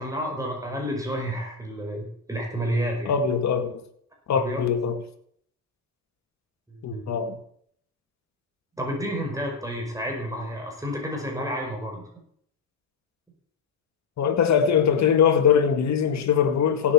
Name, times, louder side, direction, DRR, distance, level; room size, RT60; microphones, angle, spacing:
voice 1, 0.0-3.1 4.3-4.6 6.7-7.0 8.8-12.1, equal, 10° right, 5.4 m, -30 dB
voice 2, 3.1-3.8 4.3-5.0 6.8-7.4 14.2-16.9, left 7 dB, 65° left, 2.1 m, -21 dB
16.5 x 8.5 x 7.3 m
cardioid pair, 90°, 30 cm